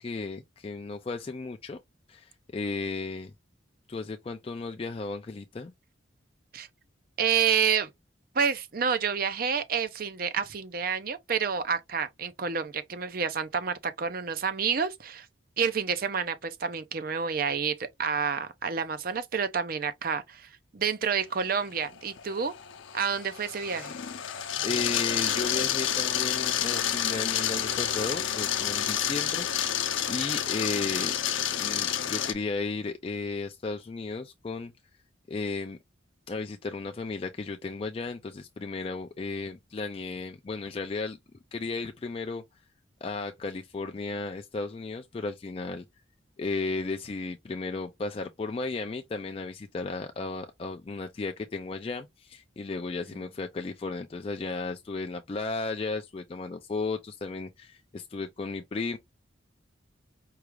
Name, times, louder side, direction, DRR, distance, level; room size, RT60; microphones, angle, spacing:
voice 1, 0.0-1.8 2.1-3.3 3.9-5.7 24.6-31.1 31.6-34.7 35.3-35.8 36.3-41.2 41.5-42.4 43.0-45.8 46.4-59.0, left 3 dB, 30° left, 0.3 m, -34 dB
voice 2, 7.2-7.9 8.3-15.3 15.6-22.5 22.9-24.0, right 6 dB, 45° right, 0.5 m, -29 dB
Sander machine motor, 21.8-32.3, left 10 dB, 80° left, 0.6 m, -29 dB
4.7 x 2.4 x 3.1 m
head